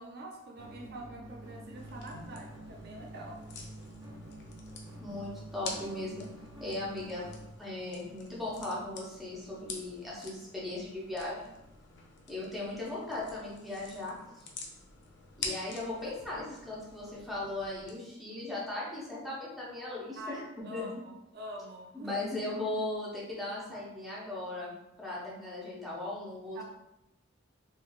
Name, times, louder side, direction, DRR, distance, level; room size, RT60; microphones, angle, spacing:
voice 1, 0.0-3.4 18.3-18.5 20.2-22.2 26.5-26.6, right 1 dB, 55° right, 1 dB, 0.4 m, -45 dB
sound 1, 0.6-7.4, right 1 dB, 20° right, 1.1 m, -48 dB
sound 2, 1.8-17.9, left 4 dB, 60° left, 0.5 m, -47 dB
voice 2, 5.0-6.3 6.6-7.3 7.6-11.5 12.3-14.4 15.4-20.4 20.7-20.9 21.9-24.7 25.0-26.6, left 2 dB, ahead, -7 dB, 0.8 m, -38 dB
3.3 x 3.1 x 2.3 m, 0.91 s
head